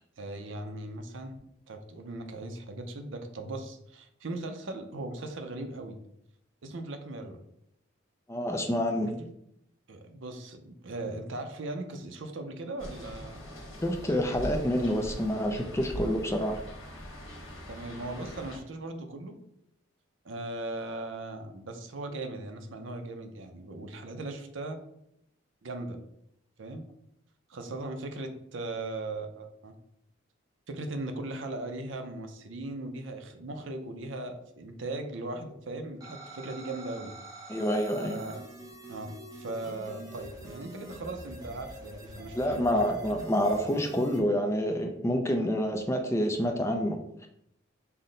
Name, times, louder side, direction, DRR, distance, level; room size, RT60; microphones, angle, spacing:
voice 1, 0.2-1.4 1.7-6.0 6.6-7.4 9.0-9.3 9.9-13.5 17.7-19.4 20.2-24.8 25.6-26.0 26.6-26.9 27.5-29.7 30.7-37.1 38.0-38.4 38.9-43.2, right 2 dB, 70° right, 6 dB, 0.6 m, -38 dB
voice 2, 8.3-9.1 13.8-16.6 37.5-38.2 42.3-47.3, equal, 15° left, 4 dB, 0.4 m, -28 dB
sound 1, 12.8-18.6, equal, 80° left, 1.2 m, -41 dB
sound 2, 36.0-44.2, right 2 dB, 20° right, 0.8 m, -45 dB
5.6 x 2.1 x 3.8 m, 0.77 s
head